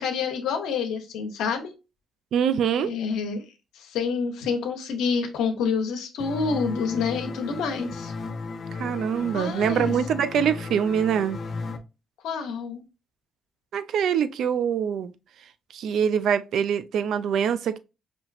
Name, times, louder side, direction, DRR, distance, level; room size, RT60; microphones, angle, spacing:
voice 1, 0.0-1.7 2.8-3.4 3.7-8.1 9.3-9.9 12.2-12.8, left 5 dB, 90° left, 0.8 m, -28 dB
voice 2, 2.3-2.9 8.7-11.4 13.7-15.1 15.7-17.8, right 8 dB, 70° right, 0.4 m, -24 dB
sound 1, 6.2-11.8, left 3 dB, 50° left, 0.6 m, -34 dB
4.3 x 2.9 x 2.4 m
cardioid pair, 90°, 0 cm